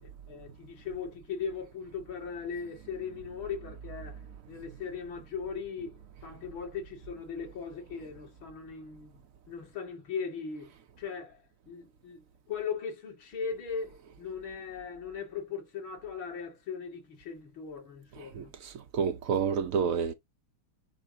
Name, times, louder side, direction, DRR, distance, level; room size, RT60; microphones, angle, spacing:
voice 1, 0.0-4.2 4.5-9.2 9.5-18.5, left 6 dB, 65° left, 2.8 m, -39 dB
voice 2, 18.3-20.1, right 6 dB, 85° right, 0.7 m, -29 dB
9.7 x 4.3 x 2.8 m
omnidirectional pair, 2.4 m